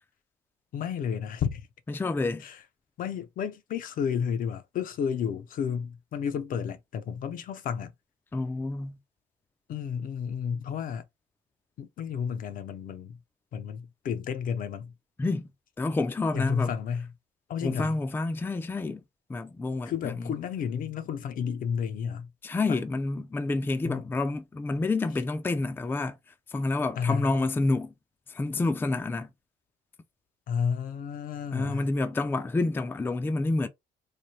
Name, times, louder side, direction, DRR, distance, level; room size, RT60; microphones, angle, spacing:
voice 1, 0.7-1.7 2.4-2.6 3.0-7.9 9.7-11.0 11.8-13.2 13.5-14.9 16.3-17.1 17.5-18.0 19.8-22.3 22.7-22.8 23.8-24.0 27.0-27.3 30.5-31.9, left 7 dB, 55° left, 0.6 m, -31 dB
voice 2, 1.9-2.4 8.3-9.0 15.2-15.5 15.8-16.7 17.6-19.0 19.3-20.3 22.4-27.9 28.3-29.3 31.5-33.7, left 3 dB, 10° left, 0.4 m, -29 dB
3.3 x 2.2 x 4.1 m
cardioid pair, 110°, 17 cm